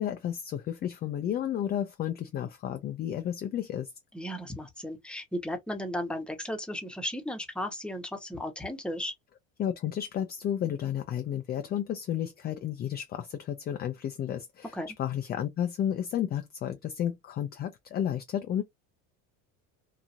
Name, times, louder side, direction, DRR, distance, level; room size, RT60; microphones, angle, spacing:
voice 1, 0.0-3.9 9.6-18.6, left 10 dB, 25° left, 0.3 m, -32 dB
voice 2, 4.1-9.1 14.7-14.9, left 1 dB, ahead, 0.8 m, -35 dB
2.8 x 2.5 x 2.4 m
supercardioid pair, 110°, 40 cm